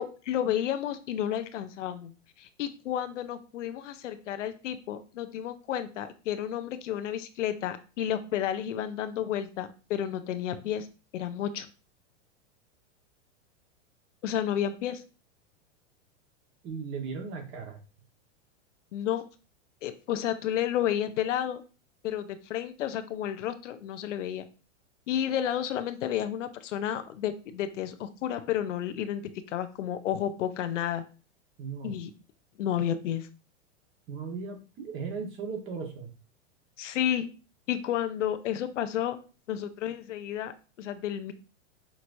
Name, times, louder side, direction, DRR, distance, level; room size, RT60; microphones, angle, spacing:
voice 1, 0.0-2.1 2.4-10.9 11.1-11.7 14.2-15.0 18.9-19.2 19.8-21.6 22.0-24.4 25.1-29.2 29.5-31.0 31.8-32.1 32.6-33.3 36.8-37.3 37.7-39.2 39.5-40.5 40.8-41.3, left 10 dB, 85° left, 10 dB, 0.7 m, -31 dB
voice 2, 16.6-17.8 31.6-32.0 34.1-36.1, right 5 dB, 35° right, 3 dB, 1.4 m, -37 dB
5.9 x 2.9 x 2.6 m, 0.34 s
hypercardioid pair, 130°, 36 cm